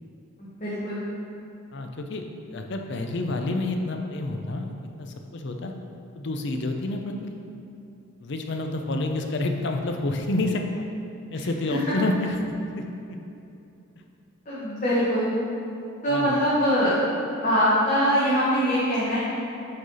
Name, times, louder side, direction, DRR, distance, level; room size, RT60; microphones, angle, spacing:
voice 1, 0.4-1.0 11.7-11.8 14.5-15.3 16.0-17.0 17.4-19.2, equal, 35° left, -10 dB, 1.2 m, -23 dB
voice 2, 1.7-4.7 5.0-5.7 6.1-7.3 8.2-10.9 11.3-12.4 12.8-12.9 13.1-13.2 16.1-16.4, left 2 dB, 55° left, 4 dB, 0.5 m, -29 dB
7.9 x 3.9 x 4.0 m, 2.7 s
head